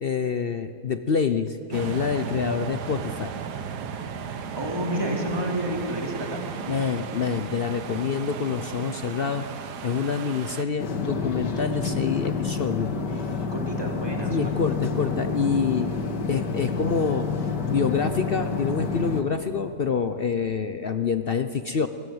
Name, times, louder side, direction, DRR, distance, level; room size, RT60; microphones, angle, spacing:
voice 1, 0.0-3.3 6.7-9.5 9.8-13.3 14.3-15.9 16.3-21.9, left 6 dB, 50° left, 9 dB, 0.7 m, -27 dB
sound 1, 1.7-10.6, right 6 dB, 75° right, 1.6 m, -35 dB
voice 2, 4.6-6.4 13.5-14.5, right 1 dB, 15° right, -1 dB, 3.5 m, -29 dB
sound 2, 10.8-19.2, left 5 dB, 85° left, 2.4 m, -29 dB
25.0 x 20.0 x 7.9 m, 2.5 s
omnidirectional pair, 1.8 m